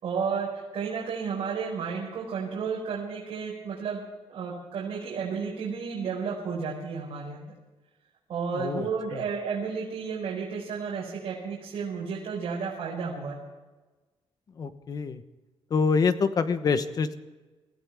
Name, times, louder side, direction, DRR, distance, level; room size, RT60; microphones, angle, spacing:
voice 1, 0.0-4.0 4.3-7.5 8.3-13.4, right 5 dB, 65° right, -5 dB, 4.8 m, -32 dB
voice 2, 8.5-9.2 14.6-15.2 15.7-17.1, left 5 dB, 40° left, 11 dB, 1.1 m, -26 dB
25.5 x 15.5 x 3.6 m, 1.2 s
wide cardioid pair, 165°, 10 cm